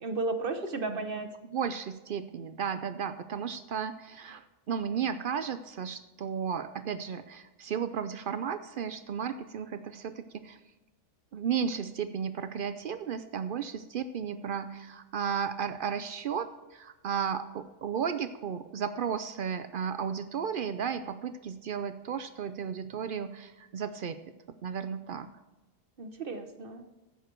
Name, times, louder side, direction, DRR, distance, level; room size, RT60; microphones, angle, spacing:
voice 1, 0.0-1.3 26.0-26.8, right 3 dB, 45° right, 7 dB, 0.9 m, -33 dB
voice 2, 0.9-10.6 11.3-24.2 24.6-25.3, right 7 dB, 70° right, 11 dB, 0.5 m, -34 dB
11.0 x 8.1 x 4.5 m, 1.1 s
omnidirectional pair, 1.4 m